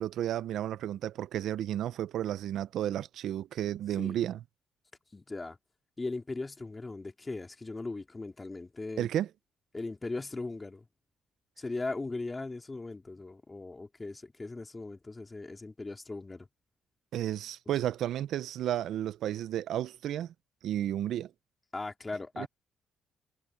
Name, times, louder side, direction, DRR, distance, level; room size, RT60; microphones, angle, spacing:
voice 1, 0.0-4.4 9.0-9.3 17.1-20.3 20.6-21.3 22.4-22.5, right 11 dB, 75° right, 0.5 m, -32 dB
voice 2, 5.1-5.6 6.0-9.1 9.7-10.8 11.6-16.5 21.7-22.5, left 3 dB, 20° left, 2.4 m, -38 dB
cardioid pair, 90°, 0 cm